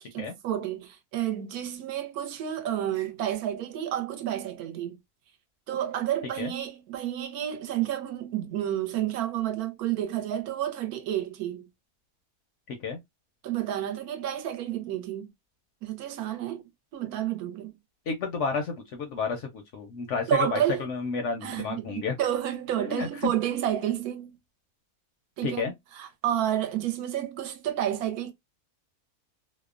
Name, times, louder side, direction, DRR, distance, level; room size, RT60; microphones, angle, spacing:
voice 1, 0.0-5.0 5.7-11.7 13.4-15.3 15.8-17.7 20.3-20.9 21.4-24.4 25.4-28.3, right 11 dB, 75° right, 1.1 m, -30 dB
voice 2, 12.7-13.0 18.1-22.1 22.8-23.3 25.4-25.7, left 4 dB, 65° left, 0.7 m, -31 dB
2.7 x 2.0 x 2.4 m
omnidirectional pair, 1.6 m